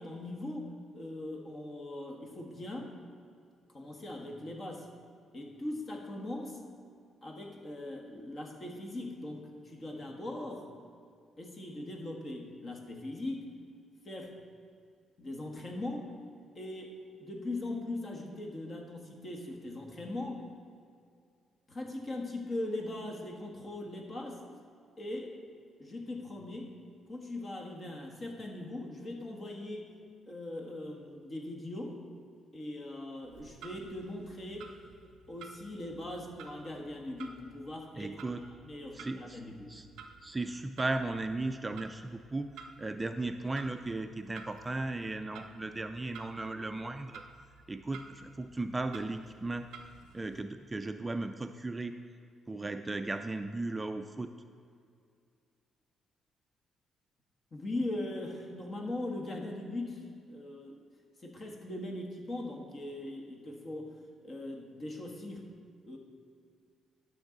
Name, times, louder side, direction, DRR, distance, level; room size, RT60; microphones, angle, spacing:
voice 1, 0.0-3.0 3.7-4.9 5.3-6.6 7.2-10.7 11.4-13.5 14.0-14.3 15.2-16.1 16.5-20.5 21.7-24.4 25.0-25.4 25.8-26.7 27.1-29.9 30.3-32.0 32.5-34.7 35.3-39.7 57.5-60.8 61.2-63.9 64.2-65.5 65.9-66.0, left 1 dB, 40° left, 1 dB, 1.4 m, -40 dB
Clock, 33.2-50.4, right 5 dB, 85° right, 0.5 m, -53 dB
voice 2, 38.0-38.4 38.9-39.4 39.7-39.9 40.2-47.2 47.7-49.7 50.1-52.0 52.5-54.3, right 2 dB, 20° right, 8 dB, 0.4 m, -36 dB
11.5 x 6.2 x 3.9 m, 2.3 s
cardioid pair, 90°, 0 cm